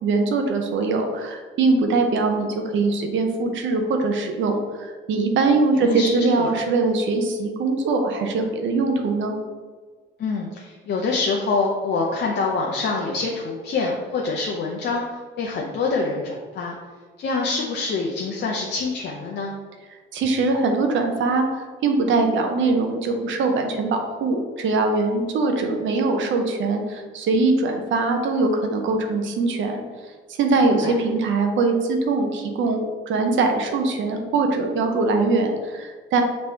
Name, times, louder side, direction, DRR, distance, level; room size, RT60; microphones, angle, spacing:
voice 1, 0.0-9.3 20.1-29.8 30.3-36.2, right 3 dB, 75° right, 4 dB, 0.7 m, -22 dB
voice 2, 5.8-6.5 10.2-16.7 17.2-19.5 30.8-31.0, left 3 dB, 60° left, -2 dB, 0.6 m, -26 dB
5.3 x 3.1 x 2.9 m, 1.5 s
cardioid pair, 90°, 20 cm